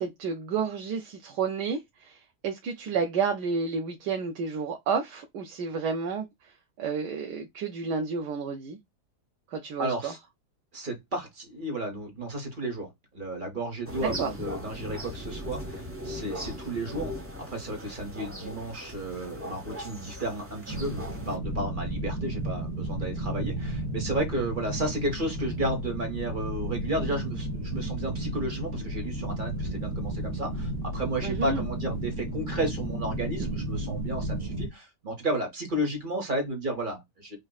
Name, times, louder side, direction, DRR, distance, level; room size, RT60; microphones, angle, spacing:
voice 1, 0.0-6.5 6.8-8.8 9.5-10.1 14.0-14.3 31.2-31.6, right 5 dB, 90° right, 1.3 m, -31 dB
voice 2, 9.8-10.2 10.7-17.1 17.5-37.4, right 1 dB, 35° right, 1.2 m, -33 dB
sound 1, 13.9-21.4, equal, 20° right, 0.4 m, -39 dB
sound 2, 20.7-34.7, right 1 dB, 65° left, 2.0 m, -33 dB
5.3 x 2.4 x 2.2 m
omnidirectional pair, 1.7 m